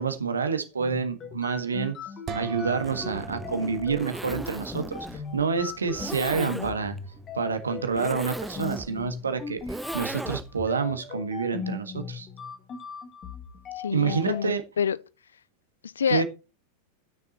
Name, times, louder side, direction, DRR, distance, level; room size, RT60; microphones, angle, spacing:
voice 1, 0.0-2.0 2.3-7.0 7.3-12.3 13.9-14.6 16.1-16.2, right 5 dB, 75° right, 1.6 m, -28 dB
sound 1, 0.7-14.4, left 5 dB, 25° left, 1.8 m, -39 dB
sound 2, 2.3-5.0, right 3 dB, 30° right, 1.3 m, -39 dB
Zipper (clothing), 2.7-10.7, right 2 dB, 5° right, 0.4 m, -38 dB
voice 2, 6.4-6.7 13.8-15.0 15.8-16.2, left 7 dB, 70° left, 0.6 m, -28 dB
12.0 x 6.7 x 4.1 m
figure-of-eight pair, 90°, 0 cm